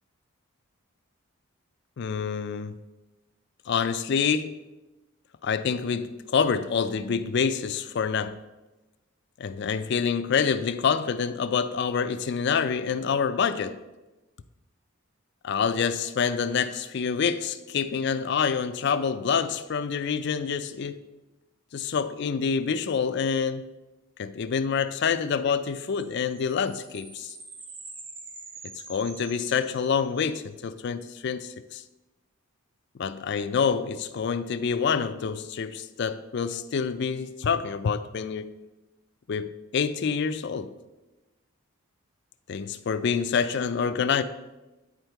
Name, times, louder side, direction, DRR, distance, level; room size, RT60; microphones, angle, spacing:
voice 1, 2.0-2.8 3.7-4.5 5.4-8.4 9.4-13.8 15.4-21.0 21.7-23.7 24.2-27.3 28.6-31.8 33.0-38.5 39.3-40.7 42.5-44.2, left 6 dB, 55° left, 0.4 m, -27 dB
sound 1, 25.8-30.4, right 3 dB, 25° right, 0.9 m, -45 dB
9.5 x 4.4 x 4.5 m
head